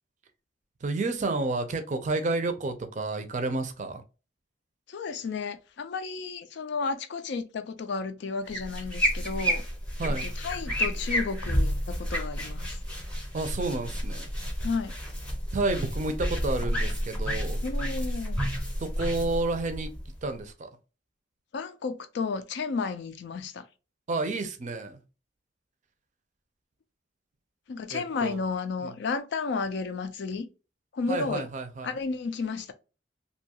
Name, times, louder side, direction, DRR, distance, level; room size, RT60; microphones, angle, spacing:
voice 1, 0.8-4.0 10.0-10.2 13.3-14.3 15.5-17.6 18.8-19.9 20.2-20.7 24.1-25.0 27.9-28.4 28.8-29.0 31.1-31.9, right 2 dB, 40° right, 0.5 m, -30 dB
voice 2, 4.9-9.6 10.2-12.8 14.6-15.0 17.6-18.4 21.5-23.6 27.7-30.5 30.9-31.5 31.8-32.7, left 4 dB, 60° left, 0.4 m, -32 dB
sound 1, 8.5-20.4, equal, 5° left, 0.7 m, -30 dB
2.6 x 2.3 x 2.7 m
head